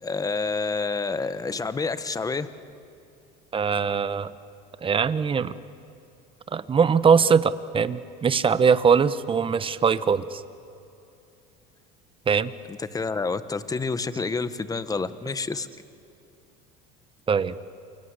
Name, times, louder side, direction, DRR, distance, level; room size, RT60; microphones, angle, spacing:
voice 1, 0.0-2.5 12.7-15.7, left 4 dB, 15° left, 12 dB, 1.3 m, -28 dB
voice 2, 3.5-4.3 4.8-5.5 6.5-10.4 12.3-12.5 17.3-17.5, right 6 dB, 25° right, 14 dB, 1.1 m, -21 dB
28.5 x 23.0 x 8.3 m, 2.7 s
supercardioid pair, 100°, 20 cm